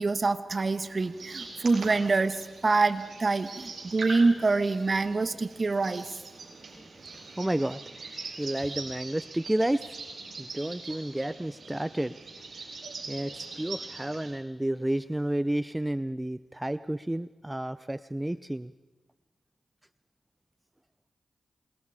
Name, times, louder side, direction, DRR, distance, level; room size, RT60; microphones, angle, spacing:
voice 1, 0.0-6.1, right 3 dB, 50° right, 11 dB, 1.6 m, -26 dB
sound 1, 0.7-14.3, right 3 dB, 65° right, 7.8 m, -42 dB
voice 2, 7.1-10.0 10.4-12.2 12.5-12.7 13.1-18.7, right 1 dB, 15° right, 14 dB, 0.6 m, -31 dB
27.5 x 22.5 x 5.1 m, 1.2 s
cardioid pair, 40°, 0 cm